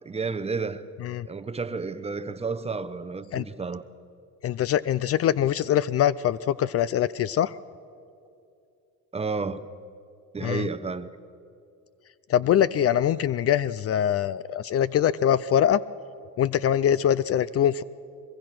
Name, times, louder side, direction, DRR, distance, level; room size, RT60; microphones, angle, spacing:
voice 1, 0.0-0.8 1.2-3.8 9.1-9.7 10.3-11.1, right 4 dB, 20° right, 0.9 m, -31 dB
voice 2, 4.4-7.6 10.4-10.7 12.3-15.8 16.4-17.8, left 10 dB, 45° left, 0.5 m, -23 dB
22.5 x 22.0 x 6.1 m
cardioid pair, 100°, 33 cm